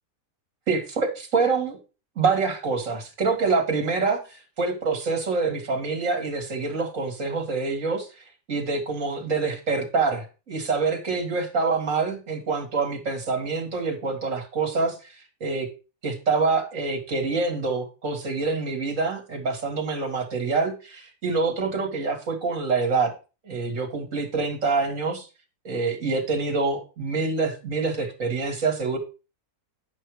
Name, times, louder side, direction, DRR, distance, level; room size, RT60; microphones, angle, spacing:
voice 1, 0.7-1.8 2.2-8.1 8.5-15.0 15.4-15.7 16.0-23.1 23.4-25.3 25.6-29.0, right 4 dB, 60° right, 2 dB, 2.4 m, -26 dB
10.0 x 5.6 x 4.8 m, 0.31 s
omnidirectional pair, 1.6 m